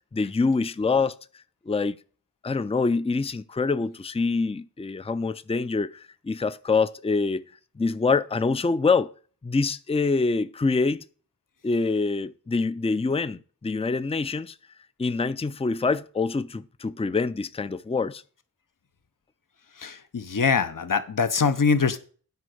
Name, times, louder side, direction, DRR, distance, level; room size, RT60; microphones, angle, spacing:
voice 1, 0.1-1.1 1.7-2.0 2.4-7.4 7.8-9.1 9.4-11.0 11.6-14.5 15.0-18.2, left 4 dB, 15° left, 0.5 m, -25 dB
voice 2, 19.7-22.0, left 5 dB, 60° left, 1.0 m, -23 dB
9.5 x 5.1 x 7.8 m
wide cardioid pair, 65°, 37 cm